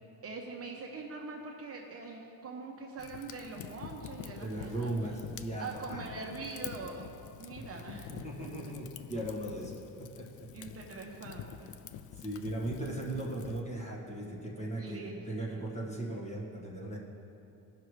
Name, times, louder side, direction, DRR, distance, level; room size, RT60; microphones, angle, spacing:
voice 1, 0.2-4.9 5.6-7.1 7.4-8.1 8.4-8.5 10.5-11.7 14.8-15.6, right 3 dB, 40° right, 0 dB, 0.9 m, -43 dB
Fire, 3.0-13.6, left 9 dB, 55° left, 0.4 m, -47 dB
voice 2, 4.4-6.0 8.1-10.7 12.1-17.0, right 1 dB, 20° left, -3 dB, 1.5 m, -38 dB
17.0 x 5.8 x 3.2 m, 2.8 s
cardioid pair, 135°, 38 cm